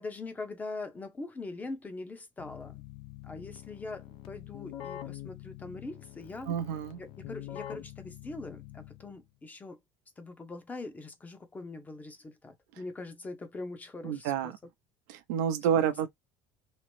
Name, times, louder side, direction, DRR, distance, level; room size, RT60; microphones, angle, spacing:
voice 1, 0.0-2.8 3.2-6.6 7.0-9.8 10.2-14.5, left 3 dB, 15° left, 0.7 m, -42 dB
Keyboard (musical), 2.4-9.2, left 13 dB, 65° left, 0.5 m, -45 dB
voice 2, 6.5-7.0 14.0-14.5 15.1-16.1, right 8 dB, 90° right, 0.6 m, -29 dB
2.9 x 2.0 x 3.0 m
cardioid pair, 120°, 9 cm